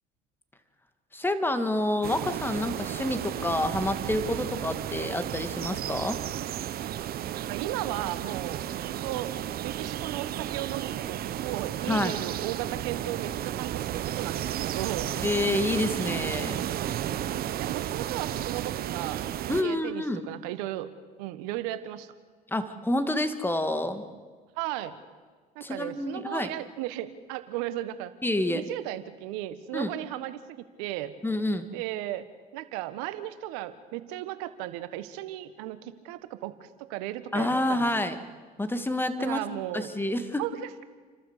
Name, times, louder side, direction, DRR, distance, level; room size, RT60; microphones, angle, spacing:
voice 1, 1.1-6.2 11.9-12.2 15.2-16.7 19.5-20.2 22.5-24.0 25.6-26.5 28.2-28.6 29.7-29.9 31.2-31.7 37.3-38.2 38.6-39.4 39.7-40.4, left 1 dB, 10° left, 9 dB, 2.2 m, -28 dB
sound 1, 2.0-19.6, right 11 dB, 55° right, 1.0 m, -33 dB
voice 2, 7.3-9.3 9.6-15.1 17.1-20.9 21.2-22.1 24.6-24.9 25.5-28.1 28.5-31.1 31.7-32.3 32.5-37.8 39.2-39.9 40.4-40.8, right 14 dB, 80° right, 12 dB, 1.4 m, -36 dB
29.5 x 12.5 x 8.3 m, 1.5 s
supercardioid pair, 80°, 19 cm